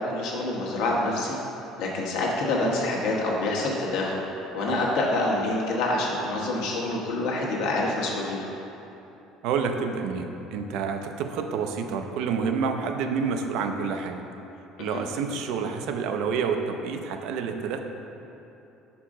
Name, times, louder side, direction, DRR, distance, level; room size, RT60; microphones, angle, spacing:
voice 1, 0.0-1.4 1.8-4.2 4.5-8.4 14.8-15.0, left 2 dB, 65° left, -3 dB, 1.1 m, -26 dB
voice 2, 9.4-14.2 14.8-17.8, right 5 dB, 65° right, 5 dB, 0.4 m, -28 dB
6.2 x 4.7 x 3.6 m, 3.0 s
cardioid pair, 165°, 0 cm